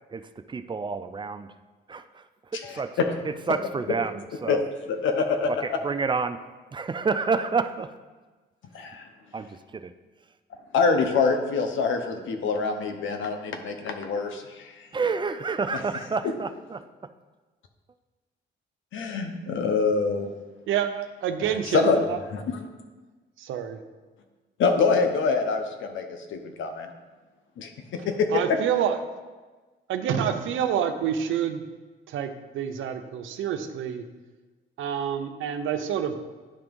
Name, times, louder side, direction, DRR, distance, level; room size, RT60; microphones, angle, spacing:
voice 1, 0.1-1.5 1.9-2.2 2.5-3.0 3.5-4.6 5.6-6.4 6.7-7.9 9.3-9.9 14.9-16.8, right 4 dB, 25° right, 11 dB, 0.4 m, -29 dB
voice 2, 2.5-3.1 4.5-4.6 4.9-5.5 8.7-9.1 10.7-14.9 15.7-15.8 18.9-20.3 21.7-22.0 22.3-22.6 24.6-26.9 27.6-27.7 28.0-28.3, left 4 dB, 75° left, 6 dB, 0.9 m, -25 dB
voice 3, 20.7-22.2 23.4-23.8 28.3-29.0 29.9-31.6 32.1-34.0 34.8-36.1, right 9 dB, 80° right, 8 dB, 0.7 m, -27 dB
9.9 x 3.5 x 5.3 m, 1.3 s
cardioid pair, 90°, 20 cm